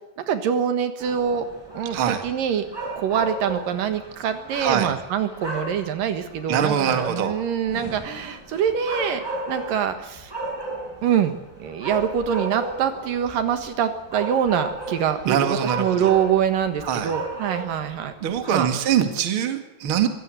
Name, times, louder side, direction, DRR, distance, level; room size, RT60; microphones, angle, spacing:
voice 1, 0.3-1.5 1.7-2.7 3.0-10.3 11.0-11.3 11.6-18.1 18.5-18.7, right 8 dB, 75° right, 9 dB, 3.1 m, -24 dB
sound 1, 1.0-19.1, right 2 dB, 5° right, 6.4 m, -35 dB
voice 2, 1.9-2.2 4.6-4.9 6.5-7.3 15.3-16.1 16.8-17.1 18.2-20.1, right 9 dB, 40° right, 7 dB, 2.4 m, -23 dB
23.0 x 17.0 x 7.8 m, 0.97 s
omnidirectional pair, 4.1 m